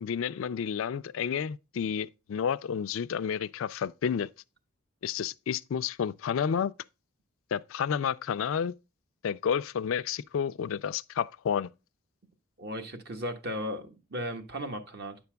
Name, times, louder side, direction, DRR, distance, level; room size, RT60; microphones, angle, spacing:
voice 1, 0.0-4.3 5.0-6.7 7.5-8.7 9.2-11.7, left 7 dB, 70° left, 0.3 m, -30 dB
voice 2, 12.6-15.2, equal, 50° right, 1.3 m, -36 dB
10.0 x 6.9 x 2.2 m
head